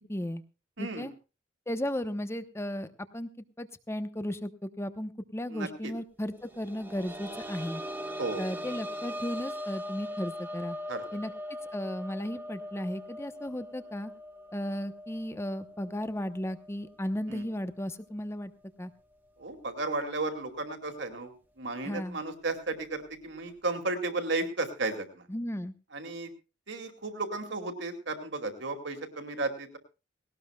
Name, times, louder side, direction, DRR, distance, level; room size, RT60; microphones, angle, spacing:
voice 1, 0.1-0.4 0.8-1.1 1.7-2.9 3.1-3.3 3.6-7.8 8.4-10.8 11.1-11.3 11.7-14.1 14.5-18.5 18.8-18.9 21.8-22.2 25.3-25.7, left 1 dB, 15° left, 11 dB, 0.9 m, -35 dB
voice 2, 0.8-1.1 5.5-5.9 8.2-8.4 10.9-11.0 17.3-17.4 19.4-25.3 25.9-26.3 26.7-29.8, right 3 dB, 60° right, 6 dB, 2.5 m, -34 dB
sound 1, 6.4-17.9 18.2-18.3 19.9-20.0, equal, 10° right, 1.1 m, -41 dB
19.0 x 18.0 x 2.3 m, 0.30 s
head